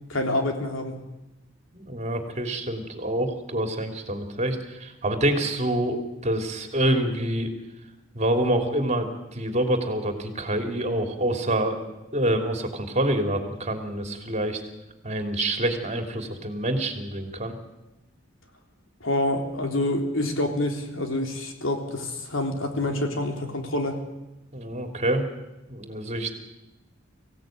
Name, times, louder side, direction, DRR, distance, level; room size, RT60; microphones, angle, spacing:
voice 1, 0.1-1.0 19.0-24.0, left 1 dB, 80° left, 3 dB, 3.5 m, -27 dB
voice 2, 1.7-7.5 8.1-11.8 12.1-14.6 15.0-17.5 24.5-25.3 25.7-26.3, right 1 dB, 35° right, 5 dB, 3.1 m, -26 dB
24.5 x 16.5 x 9.2 m, 0.99 s
head